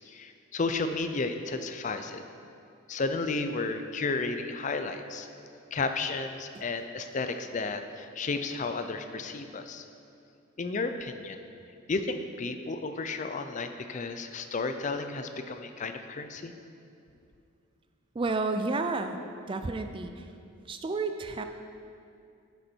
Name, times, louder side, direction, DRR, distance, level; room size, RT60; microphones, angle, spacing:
voice 1, 0.1-2.2 2.9-5.3 5.7-9.8 10.6-11.4 11.9-16.5, left 3 dB, 35° left, 8 dB, 0.4 m, -33 dB
voice 2, 18.1-19.2 19.5-20.3 20.7-21.4, right 3 dB, 25° right, 7 dB, 0.4 m, -31 dB
9.6 x 8.0 x 4.5 m, 2.5 s
head